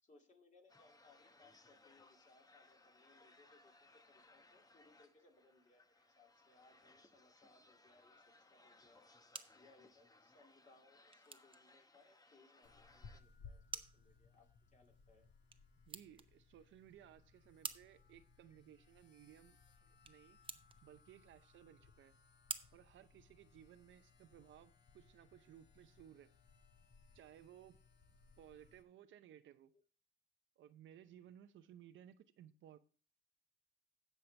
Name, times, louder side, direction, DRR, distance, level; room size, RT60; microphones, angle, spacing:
voice 1, 0.0-9.3 9.5-15.3, left 3 dB, 40° left, 2.5 m, -69 dB
sound 1, 0.7-13.2, left 2 dB, 20° left, 0.9 m, -66 dB
sound 2, 8.9-23.8, right 4 dB, 25° right, 0.9 m, -54 dB
sound 3, 12.6-28.8, left 5 dB, 60° left, 1.8 m, -64 dB
voice 2, 15.9-20.4 20.8-22.1 22.7-26.3 27.1-27.7 28.4-29.7 30.6-32.8, right 10 dB, 75° right, 0.8 m, -60 dB
16.5 x 5.7 x 3.4 m
cardioid pair, 90°, 20 cm